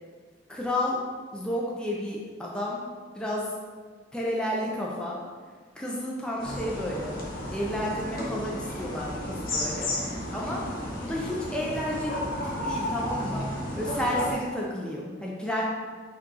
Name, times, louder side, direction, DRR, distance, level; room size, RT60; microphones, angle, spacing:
voice 1, 0.5-1.0 1.3-2.8 3.1-3.5 4.1-5.2 5.7-7.2 7.5-9.9 10.3-10.6 11.0-12.1 12.4-13.5 13.8-15.6, left 1 dB, 5° left, -4 dB, 0.5 m, -31 dB
sound 1, 6.4-14.3, left 1 dB, 50° left, 0.8 m, -33 dB
5.4 x 2.4 x 4.0 m, 1.5 s
head